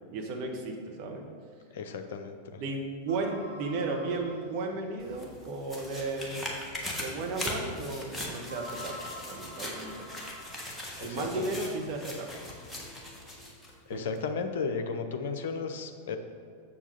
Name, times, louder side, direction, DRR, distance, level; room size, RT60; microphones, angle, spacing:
voice 1, 0.1-1.2 2.6-6.5 7.0-9.0 9.3-10.1 11.0-12.3 13.9-14.2, right 3 dB, 45° right, 1 dB, 1.3 m, -34 dB
voice 2, 1.7-2.4 11.1-11.6 13.9-16.2, left 5 dB, 55° left, 6 dB, 0.7 m, -34 dB
sound 1, 3.1-5.1 5.8-5.9 6.5-6.6 8.5-10.9, left 1 dB, 70° right, 1.1 m, -46 dB
sound 2, 5.0-13.7 14.2-14.3, left 1 dB, 5° left, 1.5 m, -40 dB
7.3 x 7.2 x 4.1 m, 2.2 s
figure-of-eight pair, 90°, 0 cm